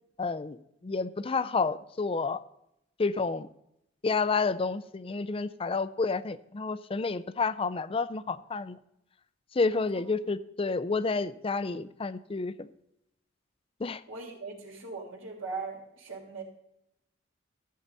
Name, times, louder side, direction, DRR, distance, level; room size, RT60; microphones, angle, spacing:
voice 1, 0.2-0.6 0.8-2.4 3.0-3.5 4.0-8.8 9.5-12.7 13.8-14.0, left 4 dB, 30° left, 15 dB, 0.4 m, -30 dB
voice 2, 9.7-10.1 14.1-16.4, right 4 dB, 80° right, -1 dB, 3.2 m, -40 dB
14.0 x 8.5 x 4.1 m, 0.80 s
head